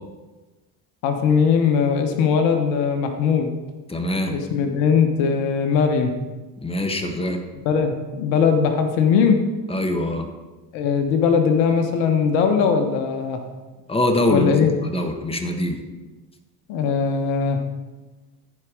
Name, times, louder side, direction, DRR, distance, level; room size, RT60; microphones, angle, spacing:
voice 1, 1.0-3.5 4.3-6.1 7.6-9.4 10.7-13.4 14.3-14.7 16.7-17.6, left 6 dB, 65° left, 6 dB, 1.3 m, -20 dB
voice 2, 3.9-4.3 6.6-7.4 9.7-10.3 13.9-15.8, left 1 dB, 10° left, 5 dB, 1.5 m, -23 dB
14.5 x 5.0 x 4.9 m, 1.2 s
hypercardioid pair, 65°, 49 cm